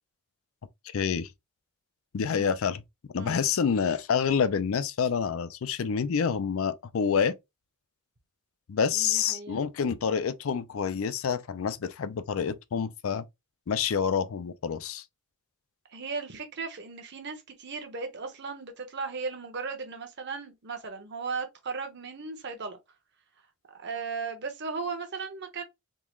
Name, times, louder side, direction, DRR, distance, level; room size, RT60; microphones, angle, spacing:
voice 1, 0.9-1.3 2.1-2.8 3.1-7.4 8.7-13.2 13.7-15.0, left 6 dB, 70° left, 0.4 m, -27 dB
voice 2, 2.2-2.5 3.1-3.5 8.9-9.6 15.9-22.8 23.7-25.6, right 4 dB, 55° right, 0.9 m, -36 dB
3.7 x 2.4 x 3.0 m
head